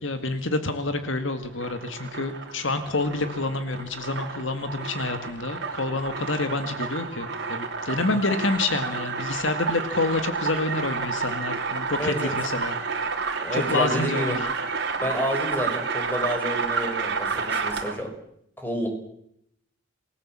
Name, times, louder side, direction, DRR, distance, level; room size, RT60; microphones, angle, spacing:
voice 1, 0.0-12.8 13.5-14.5, left 2 dB, 70° left, 9 dB, 2.1 m, -28 dB
sound 1, 1.4-18.1, right 4 dB, 55° right, 3.4 m, -30 dB
voice 2, 11.9-12.3 13.4-14.4 15.0-18.1 18.6-18.9, equal, 10° left, 3 dB, 5.4 m, -29 dB
28.0 x 19.5 x 7.6 m, 0.75 s
head